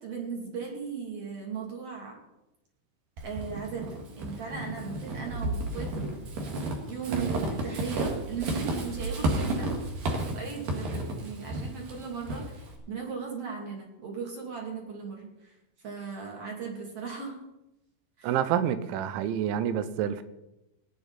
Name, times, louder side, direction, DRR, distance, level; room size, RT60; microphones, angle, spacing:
voice 1, 0.0-2.2 3.2-3.9 4.2-6.1 6.8-9.8 10.1-15.6 15.8-17.4 18.2-18.4, right 5 dB, 40° right, 0 dB, 2.9 m, -37 dB
Walk footsteps / Squeak, 3.2-12.8, right 2 dB, 60° right, 3.0 m, -32 dB
voice 2, 18.2-20.2, right 10 dB, 85° right, 13 dB, 3.2 m, -28 dB
18.0 x 10.5 x 4.1 m, 0.92 s
omnidirectional pair, 5.3 m